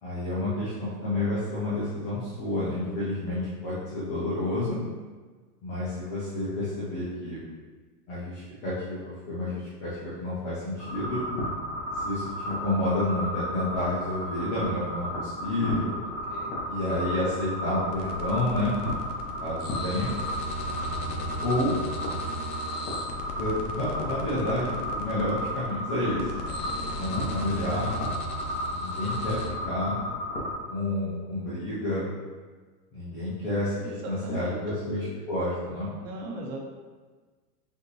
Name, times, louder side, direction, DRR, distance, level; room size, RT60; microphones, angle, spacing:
voice 1, 0.0-4.8 5.6-7.4 8.1-11.2 11.9-16.0 16.7-18.8 19.4-20.1 21.4-21.8 23.4-26.5 27.0-27.9 28.7-30.0 30.7-32.0 32.9-35.9, left 1 dB, 20° left, -9 dB, 0.3 m, -30 dB
sound 1, 10.8-30.5, equal, 35° left, 1.1 m, -34 dB
sound 2, 17.9-29.5, left 1 dB, 75° left, 0.9 m, -37 dB
voice 2, 33.8-34.6 36.0-36.6, right 2 dB, 45° right, 0 dB, 1.0 m, -37 dB
5.5 x 2.5 x 3.0 m, 1.4 s
hypercardioid pair, 135°, 49 cm